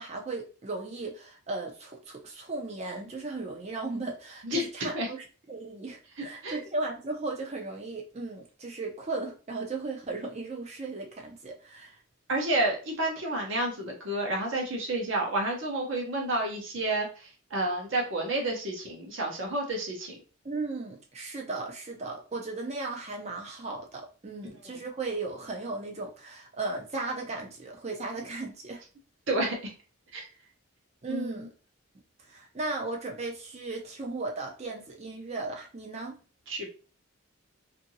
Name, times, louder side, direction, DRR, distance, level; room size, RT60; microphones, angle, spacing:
voice 1, 0.0-12.0 20.4-28.8 31.0-31.5 32.3-36.2, right 3 dB, 30° right, 0.5 m, -36 dB
voice 2, 4.4-5.1 6.4-6.6 12.3-20.2 24.6-24.8 29.3-29.7 30.1-30.2 31.1-31.5 36.5-36.7, right 1 dB, 60° right, 0.9 m, -30 dB
2.7 x 2.6 x 2.7 m
head